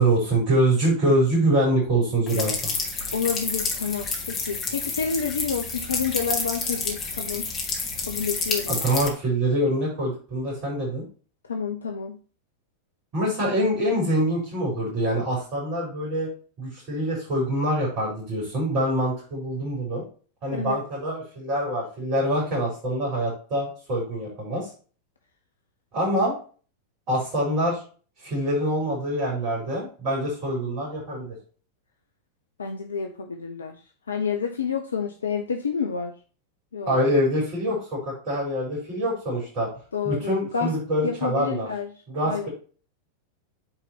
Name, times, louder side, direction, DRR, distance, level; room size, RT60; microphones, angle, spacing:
voice 1, 0.0-2.7 8.7-11.0 13.1-16.3 16.6-20.0 20.4-24.7 25.9-26.3 27.1-27.8 28.2-31.4 36.8-39.7 40.0-41.7 42.1-42.5, right 1 dB, 40° right, -4 dB, 4.5 m, -25 dB
sound 1, 2.3-9.1, left 4 dB, 25° left, 2.2 m, -29 dB
voice 2, 3.1-7.5 8.1-8.8 11.4-12.2 20.5-20.8 32.6-36.1 36.7-37.0 39.9-40.7 41.0-42.5, left 6 dB, 70° left, 4 dB, 0.7 m, -29 dB
8.8 x 4.2 x 4.4 m, 0.39 s
figure-of-eight pair, 90°, 0 cm